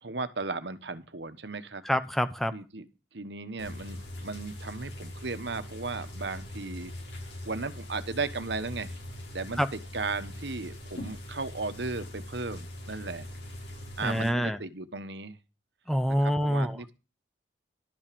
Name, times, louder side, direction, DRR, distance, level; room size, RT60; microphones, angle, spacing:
voice 1, 0.0-1.8 2.5-2.8 3.1-6.9 7.4-9.0 9.3-13.3 14.0-15.4 16.2-16.9, right 3 dB, 75° right, 10 dB, 1.3 m, -36 dB
voice 2, 1.8-2.5 9.6-9.7 14.0-14.6 15.9-16.8, equal, ahead, 10 dB, 0.8 m, -26 dB
sound 1, 3.6-14.3, left 1 dB, 75° left, 5.4 m, -42 dB
12.5 x 6.0 x 6.9 m, 0.29 s
head